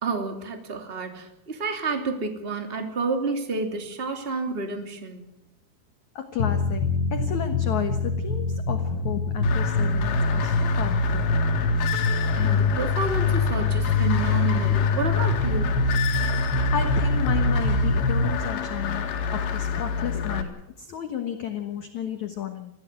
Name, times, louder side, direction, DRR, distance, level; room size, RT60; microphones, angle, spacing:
voice 1, 0.0-5.3 12.4-15.8, right 4 dB, 15° right, 5 dB, 2.2 m, -30 dB
voice 2, 6.2-6.9 7.1-11.3 16.7-22.7, left 9 dB, 65° left, 6 dB, 2.0 m, -33 dB
sound 1, 6.4-18.3, left 2 dB, 30° left, 4.9 m, -24 dB
sound 2, 9.4-20.4, left 6 dB, 85° left, 4.4 m, -29 dB
21.5 x 15.5 x 9.4 m, 0.83 s
omnidirectional pair, 5.0 m